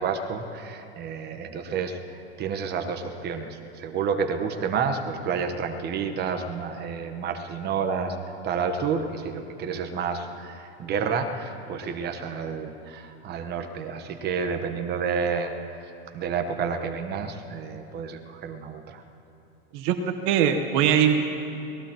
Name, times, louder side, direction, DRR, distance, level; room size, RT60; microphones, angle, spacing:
voice 1, 0.0-8.1 8.4-15.5 16.1-19.0, right 6 dB, 30° right, 6 dB, 1.2 m, -30 dB
voice 2, 19.7-21.4, right 8 dB, 55° right, 7 dB, 1.2 m, -22 dB
25.5 x 18.5 x 3.0 m, 2.8 s
hypercardioid pair, 120°, 32 cm